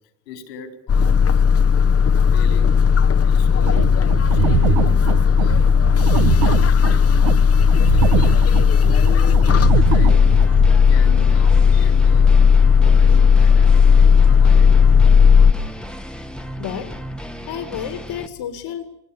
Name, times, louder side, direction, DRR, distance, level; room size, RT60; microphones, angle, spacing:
voice 1, 0.3-1.5 2.2-2.8 3.3-5.7 6.1-7.3 7.9-8.5 8.9-10.4 10.9-12.5 12.8-15.2, left 5 dB, 85° left, 6 dB, 4.2 m, -38 dB
sound 1, 0.9-15.5, left 6 dB, 30° left, 1.1 m, -14 dB
sound 2, 3.5-10.7, right 11 dB, 60° right, 1.5 m, -23 dB
sound 3, 9.5-18.3, equal, ahead, 1.6 m, -34 dB
voice 2, 16.6-17.0 17.5-18.8, left 9 dB, 60° left, 8 dB, 2.2 m, -30 dB
25.0 x 20.0 x 7.1 m, 0.81 s
hypercardioid pair, 75°, 48 cm